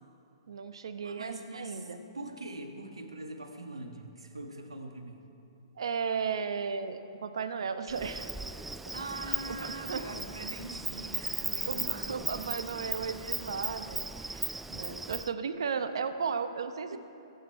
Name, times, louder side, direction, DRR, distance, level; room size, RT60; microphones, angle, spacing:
voice 1, 0.5-2.0 5.8-8.3 9.3-10.1 11.2-17.0, right 6 dB, 65° right, 10 dB, 0.9 m, -35 dB
voice 2, 1.0-1.9 2.1-5.2 8.9-12.6 16.9-17.0, right 2 dB, 85° right, 4 dB, 1.6 m, -42 dB
Insect, 7.9-15.3, right 2 dB, 5° right, 0.3 m, -37 dB
22.0 x 8.5 x 4.7 m, 2.8 s
figure-of-eight pair, 120°, 3 cm